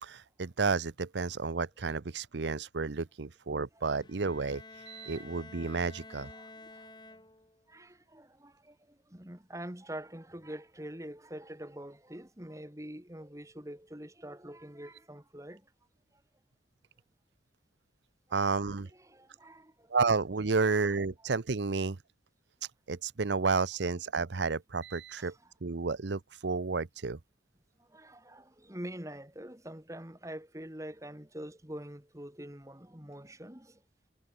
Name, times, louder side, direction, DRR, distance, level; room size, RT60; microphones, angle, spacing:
voice 1, 0.0-6.3 18.3-18.9 19.9-22.0 22.9-25.3 25.6-27.2, right 4 dB, 80° right, 0.8 m, -31 dB
Bowed string instrument, 4.0-7.7, left 3 dB, 25° left, 5.6 m, -51 dB
voice 2, 6.4-6.9 7.7-15.6 19.1-19.9 20.6-20.9 25.2-25.3 27.9-33.8, right 1 dB, 15° right, 2.5 m, -45 dB
head